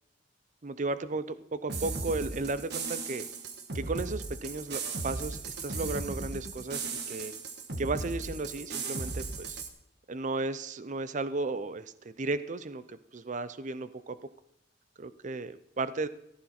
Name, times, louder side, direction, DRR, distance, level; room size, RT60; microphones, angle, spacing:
voice 1, 0.6-3.2 3.7-7.3 7.8-9.6 10.1-14.2 15.0-16.1, right 3 dB, 40° right, 13 dB, 0.6 m, -34 dB
sound 1, 1.7-9.7, right 4 dB, 60° right, 1.4 m, -37 dB
14.0 x 14.0 x 4.3 m, 0.81 s
head